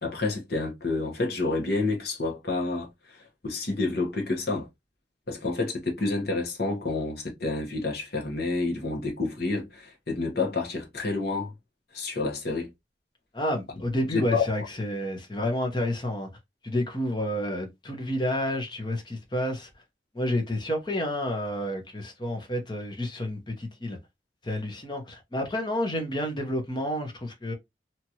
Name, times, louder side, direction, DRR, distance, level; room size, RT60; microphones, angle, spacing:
voice 1, 0.0-4.7 5.3-11.5 11.9-12.7 14.1-14.5, left 3 dB, 60° left, 1.1 m, -29 dB
voice 2, 13.3-16.3 16.6-19.7 20.1-24.0 24.4-27.5, left 1 dB, 25° left, 0.8 m, -30 dB
2.9 x 2.5 x 2.9 m
head